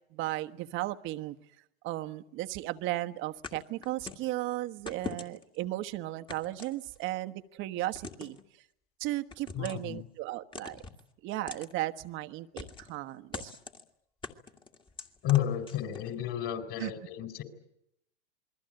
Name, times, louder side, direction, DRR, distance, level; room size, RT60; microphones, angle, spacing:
voice 1, 0.1-1.4 1.8-8.4 9.0-10.8 11.2-13.5 16.8-16.9, right 16 dB, 40° right, 9 dB, 1.2 m, -35 dB
sound 1, 3.4-4.3 4.9-5.6 6.3-7.2 7.9-8.4 9.3-9.9 10.5-11.0 11.5-11.7 12.6-13.0 13.3-13.8 14.2-16.1, left 5 dB, 15° left, 1.9 m, -43 dB
voice 2, 9.5-10.0 15.2-17.4, left 12 dB, 40° left, 8 dB, 4.4 m, -31 dB
28.0 x 21.5 x 7.8 m, 0.77 s
hypercardioid pair, 120°, 32 cm